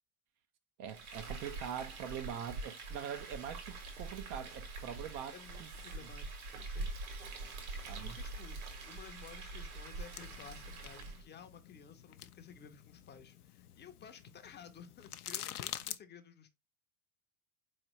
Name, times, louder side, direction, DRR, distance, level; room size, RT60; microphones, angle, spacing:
voice 1, 0.8-5.7 6.0-6.1 7.9-8.2, right 9 dB, 40° right, 0.5 m, -43 dB
Frying (food), 0.9-11.2, right 3 dB, 70° right, 1.7 m, -44 dB
voice 2, 5.3-6.9 7.6-8.6 8.9-16.5, left 7 dB, 25° left, 0.6 m, -54 dB
sound 1, 10.1-16.0, left 11 dB, 80° left, 0.5 m, -47 dB
4.4 x 3.1 x 3.0 m
figure-of-eight pair, 75°, 45 cm